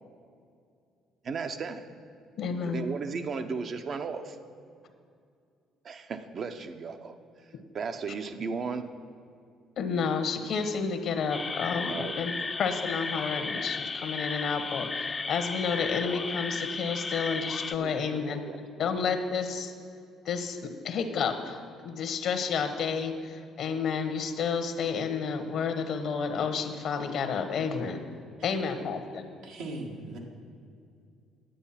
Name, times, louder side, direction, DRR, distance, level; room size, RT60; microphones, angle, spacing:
voice 1, 1.2-1.8 2.6-4.4 5.8-8.9 11.9-12.2 17.7-19.0 28.8-28.9, right 5 dB, 50° right, 8 dB, 0.8 m, -36 dB
voice 2, 2.4-2.8 9.8-12.3 12.6-18.4 18.8-19.7 20.2-28.0 28.4-29.2, left 5 dB, 65° left, 7 dB, 1.1 m, -30 dB
sound 1, 11.3-17.7, left 4 dB, 30° left, 0.3 m, -34 dB
voice 3, 29.4-30.2, right 2 dB, 85° right, -1 dB, 1.8 m, -39 dB
10.0 x 8.1 x 5.8 m, 2.4 s
supercardioid pair, 70°, 0 cm